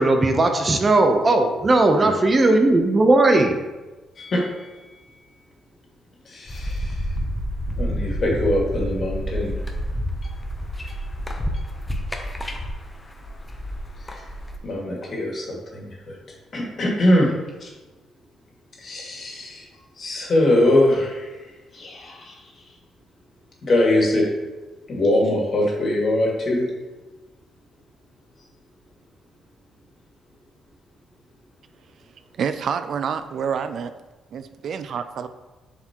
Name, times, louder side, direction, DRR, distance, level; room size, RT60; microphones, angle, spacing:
voice 1, 0.0-3.6, right 2 dB, 30° right, 5 dB, 0.7 m, -17 dB
voice 2, 4.2-4.7 6.3-7.0 7.8-9.6 10.2-10.3 10.9-11.0 11.5-11.6 14.1-14.2 14.6-16.2 16.5-17.3 17.6-17.7 18.8-19.7 20.0-22.6 23.7-24.2 24.9-26.6, left 1 dB, 50° left, -2 dB, 2.0 m, -22 dB
sound 1, 6.5-14.6, equal, 20° left, 0.7 m, -29 dB
voice 3, 32.4-33.9 34.3-35.3, right 7 dB, 60° right, 10 dB, 0.3 m, -27 dB
7.1 x 4.8 x 2.9 m, 1.2 s
cardioid pair, 90°, 0 cm